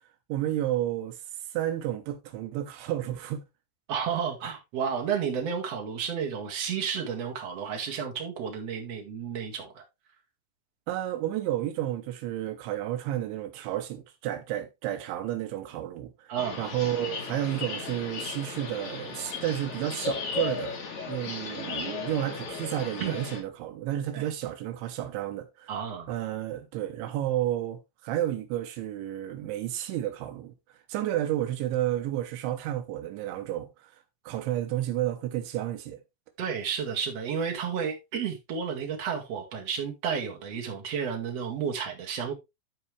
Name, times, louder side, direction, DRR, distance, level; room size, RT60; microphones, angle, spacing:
voice 1, 0.3-1.2 1.5-3.4 10.9-25.7 26.1-30.5 30.9-33.9 34.3-36.0, right 12 dB, 85° right, 3.3 m, -31 dB
voice 2, 3.9-9.8 16.3-16.7 23.0-23.2 24.1-24.3 25.7-26.1 36.4-42.3, right 7 dB, 50° right, 2.3 m, -32 dB
sound 1, 16.4-23.4, left 4 dB, 50° left, 2.8 m, -35 dB
13.0 x 4.6 x 3.2 m
omnidirectional pair, 5.1 m